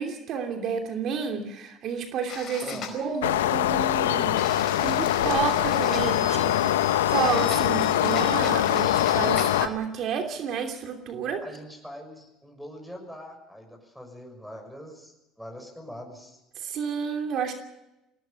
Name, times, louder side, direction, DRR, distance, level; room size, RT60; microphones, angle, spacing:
voice 1, 0.0-2.6 2.9-4.3 4.8-11.4 16.6-17.5, right 7 dB, 55° right, 4 dB, 2.9 m, -30 dB
sound 1, 2.3-3.0 4.4-9.7, left 7 dB, 55° left, 4.7 m, -38 dB
sound 2, 3.2-9.7, left 12 dB, 85° left, 0.8 m, -23 dB
voice 2, 11.4-16.4, equal, ahead, 1 dB, 6.3 m, -43 dB
21.0 x 18.0 x 7.2 m, 0.91 s
hypercardioid pair, 70°, 0 cm